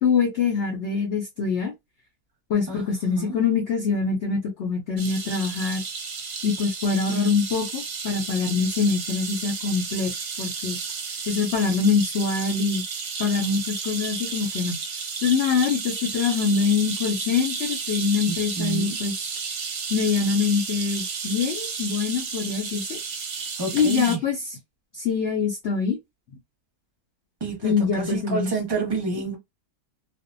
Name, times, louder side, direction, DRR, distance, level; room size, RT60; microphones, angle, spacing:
voice 1, 0.0-1.7 2.5-5.8 6.4-10.1 10.4-10.8 11.3-12.8 13.2-14.8 15.2-19.1 19.9-23.0 23.7-24.4 24.9-26.0 27.6-28.5, left 5 dB, 60° left, 0.8 m, -24 dB
sound 1, 5.0-24.2, right 5 dB, 60° right, 0.8 m, -32 dB
voice 2, 18.3-19.0 23.6-24.2 27.4-29.4, right 4 dB, 20° right, 0.9 m, -29 dB
2.5 x 2.1 x 2.5 m
omnidirectional pair, 1.6 m